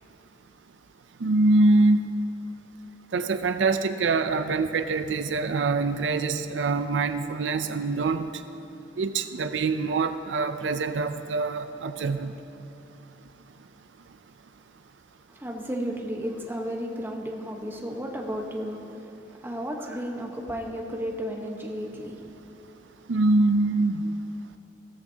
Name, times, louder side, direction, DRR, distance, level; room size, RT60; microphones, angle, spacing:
voice 1, 1.2-2.0 3.1-8.3 9.0-12.3 23.1-24.1, right 3 dB, 80° right, 10 dB, 0.5 m, -24 dB
voice 2, 15.3-22.4, equal, 10° right, 0 dB, 1.1 m, -33 dB
16.0 x 14.5 x 2.8 m, 2.7 s
head